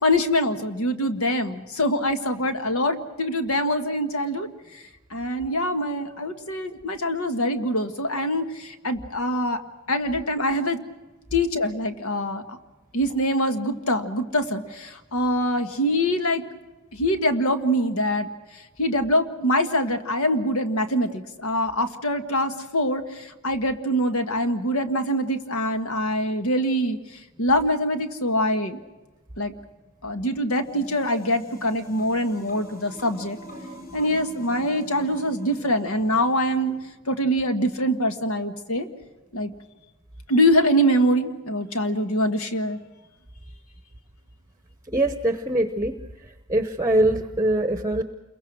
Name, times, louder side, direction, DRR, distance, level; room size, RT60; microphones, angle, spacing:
voice 1, 0.0-4.5 5.1-9.6 9.9-10.8 11.3-12.4 12.9-16.4 16.9-18.3 18.8-27.0 27.4-28.8 29.4-29.5 30.0-33.4 33.9-36.8 37.1-38.9 39.3-39.5 40.3-42.8, equal, 85° left, 8 dB, 1.7 m, -24 dB
sound 1, 30.5-36.8, equal, 40° left, 4.8 m, -43 dB
voice 2, 44.9-45.9 46.5-48.0, right 1 dB, 15° right, 8 dB, 0.9 m, -22 dB
29.0 x 22.5 x 6.3 m, 1.1 s
head